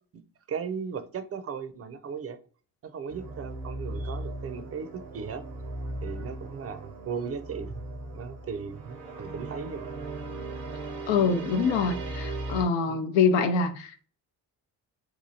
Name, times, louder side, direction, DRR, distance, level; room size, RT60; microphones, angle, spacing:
voice 1, 0.5-2.4 2.8-5.4 6.0-7.8 8.1-9.9 12.9-13.0, right 6 dB, 35° right, 0.5 m, -37 dB
sound 1, 3.1-12.7, right 2 dB, 90° right, 0.8 m, -38 dB
voice 2, 11.1-14.1, left 5 dB, 75° left, 0.6 m, -25 dB
2.9 x 2.4 x 2.7 m
hypercardioid pair, 50°, 45 cm